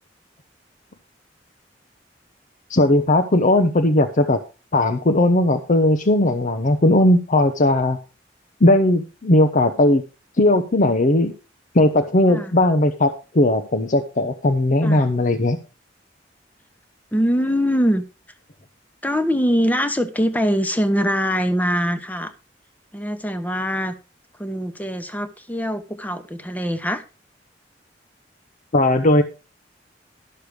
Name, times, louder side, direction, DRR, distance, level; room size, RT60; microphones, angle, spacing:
voice 1, 2.7-4.4 4.7-8.0 8.6-10.0 10.4-11.3 11.7-15.6 28.7-29.2, left 1 dB, 45° left, 7 dB, 0.8 m, -17 dB
voice 2, 17.1-18.0 19.0-22.3 22.9-23.9 24.4-27.0, equal, 10° left, 9 dB, 1.0 m, -22 dB
12.0 x 6.6 x 4.9 m, 0.31 s
head